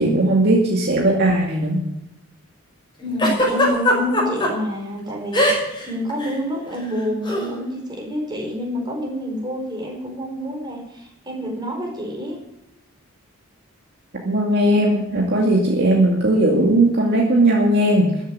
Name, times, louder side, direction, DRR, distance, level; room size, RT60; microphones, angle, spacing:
voice 1, 0.0-1.8 14.2-18.1, right 1 dB, 50° right, -1 dB, 2.4 m, -17 dB
voice 2, 3.0-12.4, left 1 dB, 20° right, -1 dB, 4.8 m, -28 dB
Giggle, 3.2-4.5 5.3-5.8 6.1-6.3 7.3-7.5, left 1 dB, 20° left, 5.5 m, -19 dB
14.0 x 8.3 x 9.6 m, 0.88 s
head